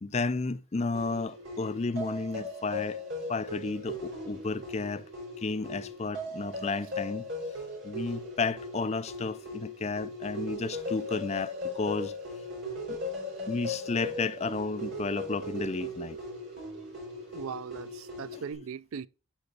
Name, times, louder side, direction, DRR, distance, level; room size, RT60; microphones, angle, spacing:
voice 1, 0.0-3.0 3.3-5.0 5.4-7.2 7.8-12.1 12.9-13.0 13.5-16.2 18.3-18.4, left 3 dB, 30° left, 0.4 m, -32 dB
sound 1, 0.9-18.5, left 1 dB, 60° right, 4.4 m, -38 dB
voice 2, 17.3-19.1, right 7 dB, 80° right, 0.4 m, -39 dB
11.5 x 5.6 x 3.9 m
head